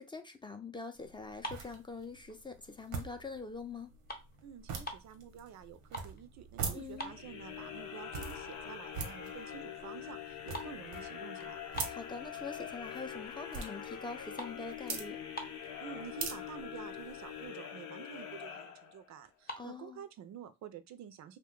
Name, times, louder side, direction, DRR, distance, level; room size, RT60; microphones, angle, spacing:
voice 1, 0.0-3.9 6.7-7.1 11.9-15.2 19.6-20.0, left 4 dB, 15° left, 0.4 m, -44 dB
sound 1, 0.9-17.5, right 5 dB, 90° right, 0.8 m, -45 dB
sound 2, 1.4-2.7 3.1-3.4 3.7-5.2 5.6-6.2 6.5-6.6 6.9-7.8 8.2-8.3 8.9-9.0 9.2-9.6 9.9-12.7 13.1-13.6 13.9-15.8 16.5-16.6 16.8-17.1 17.5-17.6 17.8-18.5 19.2-19.7, right 1 dB, 30° left, 0.8 m, -46 dB
voice 2, 4.4-11.6 15.8-21.4, right 9 dB, 65° right, 0.5 m, -49 dB
sound 3, 7.0-19.2, left 9 dB, 85° left, 0.6 m, -44 dB
2.6 x 2.2 x 3.6 m
cardioid pair, 90°, 30 cm